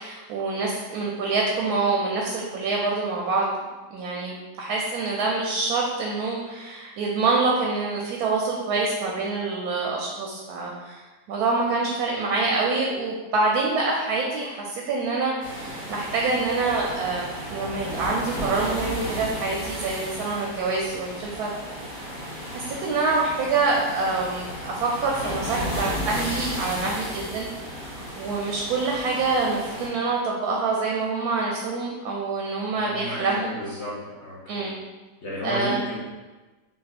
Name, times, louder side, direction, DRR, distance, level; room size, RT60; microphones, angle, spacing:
voice 1, 0.0-3.5 3.9-11.0 11.3-21.5 22.5-27.5 27.8-33.4 34.5-34.8 35.4-35.8, right 3 dB, 70° right, -2 dB, 1.0 m, -26 dB
sound 1, 15.4-29.9, equal, 20° left, 1.0 m, -34 dB
voice 2, 32.7-33.9 34.2-34.7 35.2-36.0, equal, 50° left, -8 dB, 1.1 m, -32 dB
3.5 x 2.4 x 4.0 m, 1.2 s
omnidirectional pair, 1.9 m